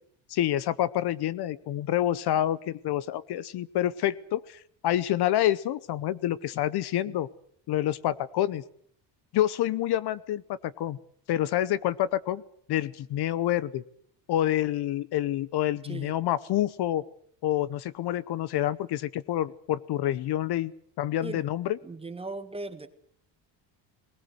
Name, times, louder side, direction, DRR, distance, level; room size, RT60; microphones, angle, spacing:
voice 1, 0.3-7.3 7.7-8.6 9.3-11.0 11.3-12.4 12.7-13.8 14.3-17.0 17.4-20.7 21.0-21.8, left 12 dB, 60° left, 0.8 m, -27 dB
voice 2, 21.8-22.9, right 3 dB, 10° right, 1.4 m, -38 dB
20.0 x 19.5 x 7.9 m
cardioid pair, 170°, 45 cm